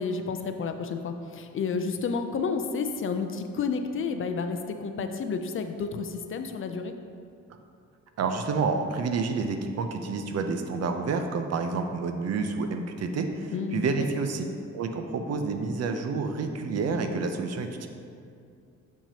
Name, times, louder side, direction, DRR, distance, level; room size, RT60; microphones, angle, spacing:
voice 1, 0.0-6.9 13.5-13.8, left 5 dB, 45° left, 7 dB, 0.5 m, -30 dB
voice 2, 8.2-14.4 14.7-17.9, right 4 dB, 55° right, 6 dB, 0.6 m, -29 dB
6.7 x 5.9 x 2.8 m, 2.4 s
cardioid pair, 90°, 30 cm